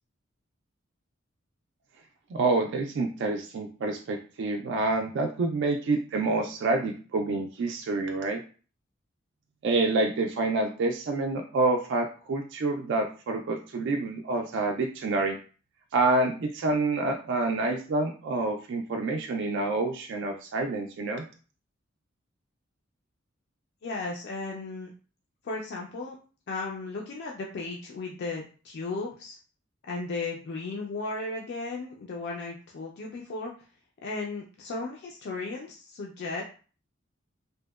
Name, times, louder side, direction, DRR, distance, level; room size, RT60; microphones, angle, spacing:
voice 1, 2.3-8.4 9.6-15.4 15.9-21.3, right 3 dB, 60° right, 2 dB, 0.3 m, -27 dB
voice 2, 23.8-24.9 25.4-26.2 26.5-29.4 29.9-33.5 34.0-36.4, left 3 dB, 55° left, -1 dB, 0.4 m, -35 dB
2.7 x 2.1 x 2.2 m, 0.38 s
head